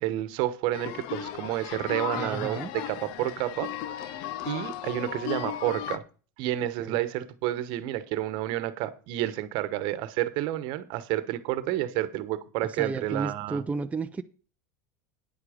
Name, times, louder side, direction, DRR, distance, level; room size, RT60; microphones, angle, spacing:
voice 1, 0.0-2.6 2.9-3.7 4.0-6.0 6.4-13.6, right 14 dB, 60° right, 1.1 m, -30 dB
sound 1, 0.7-6.0, left 11 dB, 60° left, 0.8 m, -36 dB
voice 2, 2.1-2.7 6.8-7.0 12.6-14.2, right 4 dB, 15° right, 0.6 m, -33 dB
9.9 x 7.7 x 5.1 m
hypercardioid pair, 105°, 9 cm